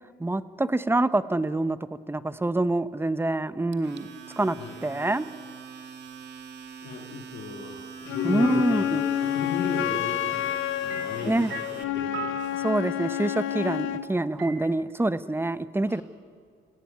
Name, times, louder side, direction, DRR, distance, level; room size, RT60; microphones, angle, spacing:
voice 1, 0.2-1.8 2.1-4.1 4.4-4.6 4.8-5.3 8.2-9.1 11.2-11.5 12.6-16.0, right 2 dB, 10° right, 14 dB, 0.9 m, -26 dB
Domestic sounds home sounds, 3.7-11.8, right 6 dB, 60° right, 2.3 m, -43 dB
voice 2, 6.8-10.5 10.8-11.5 11.7-12.5 15.9-16.0, left 4 dB, 65° left, 0 dB, 2.9 m, -36 dB
Wind instrument woodwind instrument, 8.1-14.1, left 12 dB, 80° left, 1.1 m, -29 dB
sound 1, 8.4-9.2 10.9-13.3 14.4-14.5, right 8 dB, 80° right, 2.6 m, -40 dB
28.5 x 16.5 x 9.5 m, 2.1 s
cardioid pair, 90°, 20 cm